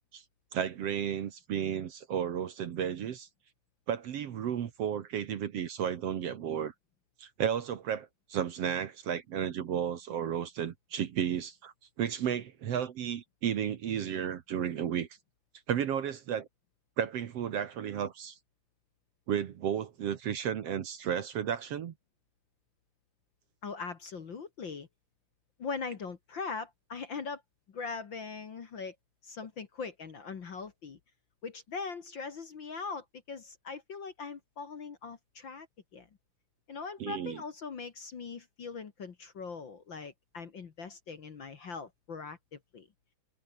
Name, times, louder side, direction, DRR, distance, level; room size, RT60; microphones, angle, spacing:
voice 1, 0.5-3.3 3.9-6.7 7.2-15.1 15.7-16.5 17.0-18.4 19.3-21.9 37.0-37.4, right 9 dB, 60° right, 2.1 m, -33 dB
voice 2, 23.6-24.9 25.6-27.4 27.7-29.0 29.2-31.0 31.4-35.7 35.9-36.1 36.7-42.9, left 5 dB, 45° left, 2.0 m, -41 dB
omnidirectional pair, 3.5 m